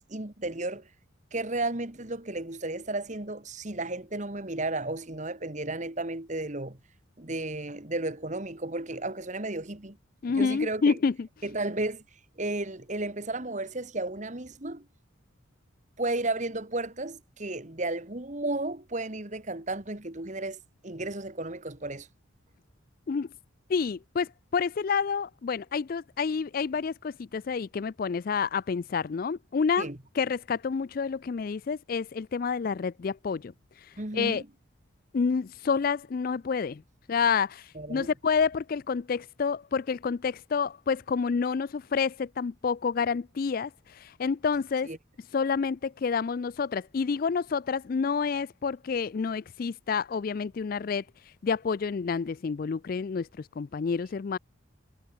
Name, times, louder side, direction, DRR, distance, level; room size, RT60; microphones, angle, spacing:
voice 1, 0.1-0.9 1.3-6.8 7.2-10.0 10.3-11.0 11.4-12.0 12.4-14.8 16.0-22.1 29.8-30.0 34.0-34.5 37.7-38.1 44.8-45.0, right 2 dB, 35° right, 1.8 m, -33 dB
voice 2, 10.2-11.3 23.1-23.3 23.7-29.9 30.2-33.5 34.1-34.4 35.1-36.8 37.1-44.9 45.3-51.0 51.4-54.4, left 5 dB, 45° left, 0.3 m, -29 dB
head